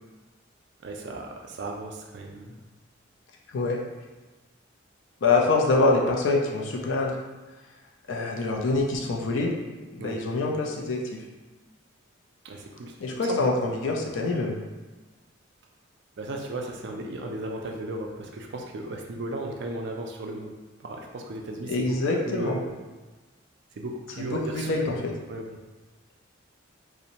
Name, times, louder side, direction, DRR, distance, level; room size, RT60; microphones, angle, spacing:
voice 1, 0.8-2.6 10.0-10.2 12.4-13.4 16.2-22.0 22.3-22.7 23.7-24.7 25.3-25.6, right 1 dB, 55° right, 1 dB, 0.3 m, -35 dB
voice 2, 5.2-7.1 8.1-9.5 9.9-11.2 13.0-14.5 21.7-22.6 24.3-25.1, left 3 dB, 70° left, 0 dB, 0.4 m, -25 dB
2.6 x 2.1 x 2.8 m, 1.2 s
head